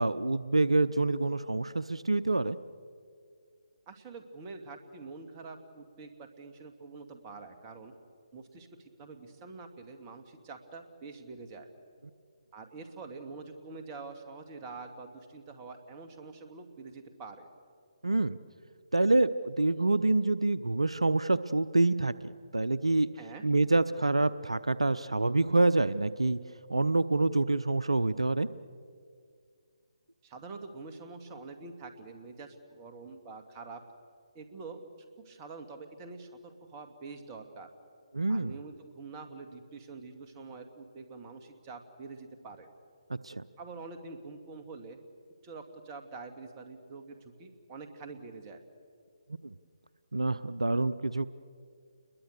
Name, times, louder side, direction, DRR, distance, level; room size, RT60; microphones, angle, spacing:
voice 1, 0.0-2.6 18.0-18.4 18.9-23.1 23.4-26.4 26.7-28.5 38.1-38.6 43.2-43.4 49.4-49.6 50.1-51.3, right 2 dB, 85° right, 15 dB, 0.6 m, -27 dB
voice 2, 3.9-7.9 8.3-11.7 12.5-17.5 23.2-23.4 30.2-33.8 34.3-34.8 35.2-37.7 38.3-42.7 43.6-45.0 45.4-48.6, right 4 dB, 25° right, 5 dB, 2.2 m, -46 dB
29.5 x 22.0 x 6.7 m, 2.2 s
figure-of-eight pair, 145°, 3 cm